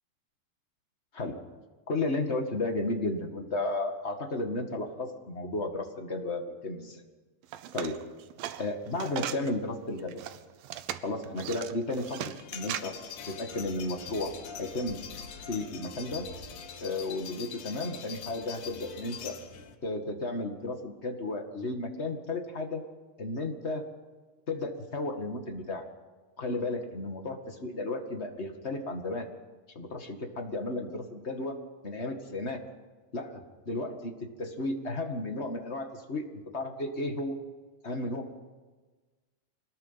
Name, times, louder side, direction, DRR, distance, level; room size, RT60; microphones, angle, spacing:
voice 1, 1.9-7.0 7.7-8.0 8.6-10.2 11.0-12.9 13.3-15.0 15.5-16.3 16.8-19.4 19.8-22.8 23.2-23.8 24.5-25.8 26.4-29.3 29.7-32.6 33.1-36.2 36.5-37.4 37.8-38.3, left 2 dB, 25° left, 3 dB, 1.6 m, -33 dB
sound 1, 7.4-9.5 10.0-12.8, right 12 dB, 90° right, 2.7 m, -38 dB
sound 2, 11.9-19.7, left 6 dB, 65° left, 2.8 m, -43 dB
25.5 x 20.0 x 5.8 m, 1.3 s
omnidirectional pair, 4.0 m